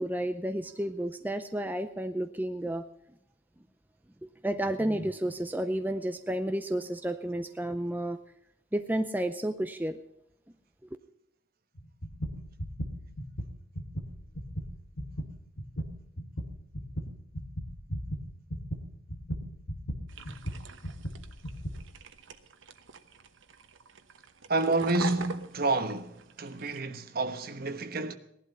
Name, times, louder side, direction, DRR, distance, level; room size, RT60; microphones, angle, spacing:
voice 1, 0.0-2.8 4.4-8.2 8.7-10.0, right 1 dB, 10° right, 0.5 m, -31 dB
sound 1, 11.8-21.9, equal, 70° left, 1.8 m, -37 dB
sound 2, 20.1-26.8, right 4 dB, 80° right, 1.1 m, -44 dB
voice 2, 24.5-28.2, right 2 dB, 50° right, 1.1 m, -29 dB
17.5 x 11.5 x 5.6 m
head